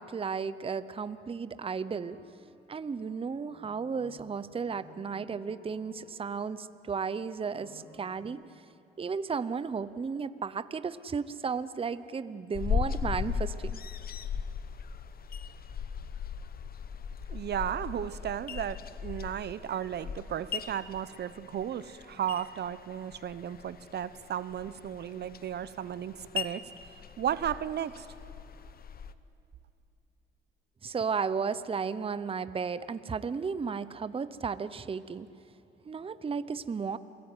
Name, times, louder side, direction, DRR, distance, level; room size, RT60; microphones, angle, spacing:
voice 1, 0.0-2.2 2.7-8.4 9.0-13.8 30.8-35.3 35.9-37.0, right 5 dB, 30° right, 15 dB, 0.8 m, -34 dB
sound 1, 1.9-2.4 3.0-4.3 4.6-6.2 7.4-8.3, left 2 dB, 70° left, 6.5 m, -55 dB
sound 2, 12.5-29.1, left 7 dB, 50° left, 1.0 m, -38 dB
voice 2, 17.3-26.7 27.2-28.1, right 10 dB, 60° right, 15 dB, 0.8 m, -34 dB
28.0 x 17.5 x 9.7 m, 2.8 s
cardioid pair, 90°, 20 cm